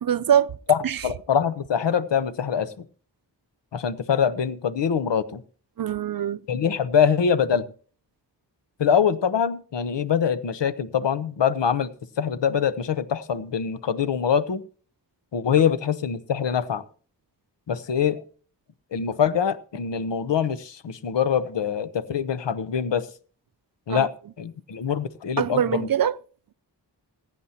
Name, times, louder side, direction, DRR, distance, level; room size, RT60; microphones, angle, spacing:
voice 1, 0.0-0.6 0.8-1.1 5.8-6.4 23.9-24.1 25.4-26.2, right 9 dB, 55° right, 0.5 m, -23 dB
voice 2, 0.7-2.7 3.7-5.4 6.5-7.6 8.8-11.9 12.2-14.6 15.3-16.8 17.7-18.2 18.9-23.1 23.9-24.1 24.4-25.9, left 7 dB, 85° left, 0.9 m, -24 dB
21.0 x 9.2 x 2.9 m
wide cardioid pair, 75°, 42 cm